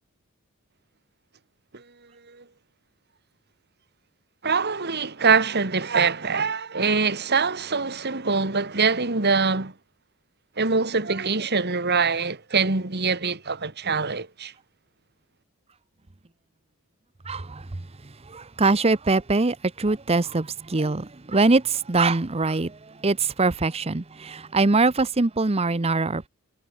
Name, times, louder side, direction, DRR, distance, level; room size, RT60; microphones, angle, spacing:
voice 1, 4.4-9.7 10.6-14.5, right 4 dB, 50° right, 2.3 m, -24 dB
voice 2, 17.3-17.6 18.3-22.7 23.0-26.3, right 3 dB, 30° right, 0.8 m, -23 dB
head